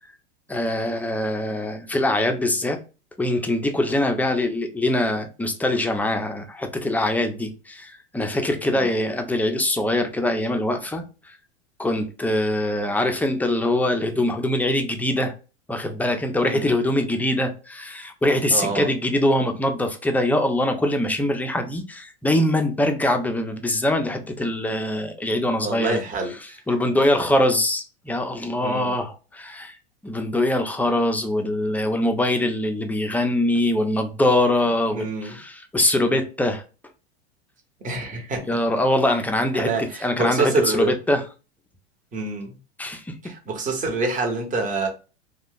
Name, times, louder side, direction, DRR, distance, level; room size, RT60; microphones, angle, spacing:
voice 1, 0.5-2.8 3.2-11.1 11.8-15.3 15.7-26.0 26.7-29.8 30.0-36.6 38.5-39.7 40.0-41.2 42.8-43.0, left 1 dB, 5° left, 0.4 m, -23 dB
voice 2, 18.5-18.9 25.6-26.6 28.6-29.0 34.9-35.4 37.8-38.4 39.5-41.0 42.1-42.6 43.2-44.9, right 3 dB, 25° right, 1.0 m, -27 dB
2.4 x 2.3 x 3.6 m
hypercardioid pair, 100°, 33 cm